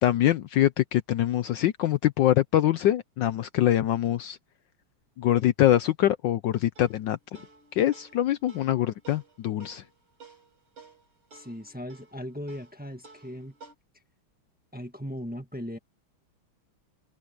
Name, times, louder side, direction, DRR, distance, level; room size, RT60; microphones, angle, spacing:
voice 1, 0.0-4.4 5.2-7.2 7.7-9.8, left 12 dB, 70° left, 1.2 m, -24 dB
sound 1, 6.8-13.7, right 4 dB, 75° right, 6.7 m, -53 dB
voice 2, 11.3-13.5 14.7-15.8, equal, 5° right, 1.3 m, -38 dB
omnidirectional pair, 2.3 m